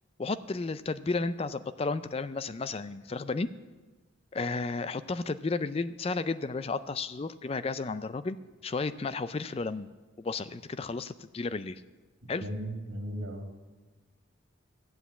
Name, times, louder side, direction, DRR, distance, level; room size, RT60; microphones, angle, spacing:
voice 1, 0.2-3.5 4.3-8.4 8.6-9.9 10.2-11.8 12.3-12.4, left 3 dB, 30° left, 15 dB, 0.3 m, -33 dB
voice 2, 12.4-13.7, equal, 85° right, 2 dB, 2.3 m, -37 dB
12.0 x 8.0 x 8.2 m, 1.2 s
head